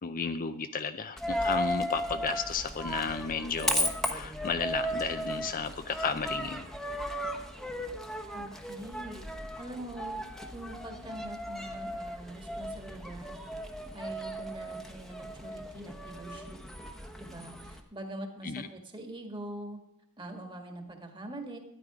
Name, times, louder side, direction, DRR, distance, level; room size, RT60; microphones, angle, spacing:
voice 1, 0.0-6.7 18.4-18.7, left 5 dB, 40° left, 9 dB, 0.6 m, -33 dB
Coin (dropping), 1.2-17.8, equal, ahead, 1.0 m, -36 dB
voice 2, 8.3-10.2 10.5-13.4 13.9-16.6 17.2-19.8 20.2-21.6, right 1 dB, 20° right, 5 dB, 1.8 m, -43 dB
12.5 x 10.5 x 4.9 m, 0.78 s
head